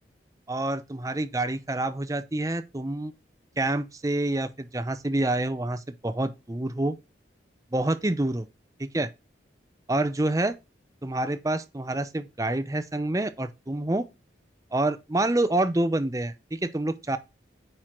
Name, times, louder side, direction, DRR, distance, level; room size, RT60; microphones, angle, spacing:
voice 1, 0.5-3.1 3.6-7.0 7.7-8.5 8.8-9.1 9.9-10.5 11.0-14.0 14.7-17.2, right 2 dB, 20° right, 0.6 m, -27 dB
8.9 x 4.6 x 3.7 m
head